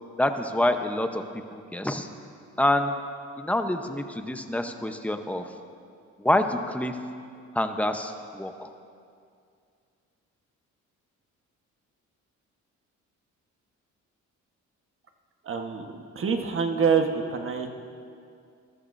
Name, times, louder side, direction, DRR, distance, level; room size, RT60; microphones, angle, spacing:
voice 1, 0.2-1.2 1.5-2.1 2.6-2.9 3.4-5.5 6.2-7.0 7.5-8.7, left 1 dB, 5° left, 6 dB, 0.9 m, -26 dB
voice 2, 15.4-17.7, right 6 dB, 45° right, 4 dB, 1.3 m, -26 dB
21.5 x 13.0 x 2.7 m, 2.4 s
cardioid pair, 90°, 30 cm